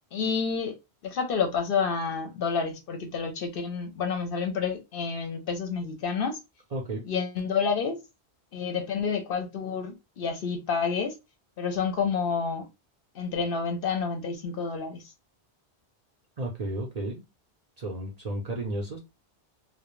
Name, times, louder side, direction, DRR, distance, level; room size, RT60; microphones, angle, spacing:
voice 1, 0.1-0.8 1.0-6.4 7.0-8.0 8.5-11.2 11.6-12.7 13.1-15.1, left 5 dB, 65° left, 0.7 m, -29 dB
voice 2, 6.7-7.0 16.4-17.2 17.8-19.0, right 1 dB, 45° right, 0.6 m, -33 dB
2.3 x 2.1 x 2.9 m
omnidirectional pair, 1.1 m